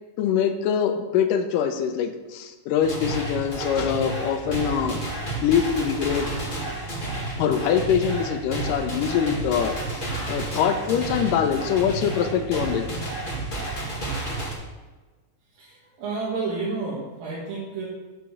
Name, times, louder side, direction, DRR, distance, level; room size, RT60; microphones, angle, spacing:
voice 1, 0.2-5.0 5.4-6.3 7.4-10.0 10.3-12.9, left 8 dB, 80° left, 8 dB, 2.2 m, -24 dB
sound 1, 2.8-14.5, right 2 dB, 25° left, 1.3 m, -31 dB
voice 2, 15.5-17.9, right 4 dB, 80° right, -7 dB, 3.4 m, -31 dB
8.2 x 6.1 x 5.9 m, 1.3 s
omnidirectional pair, 4.0 m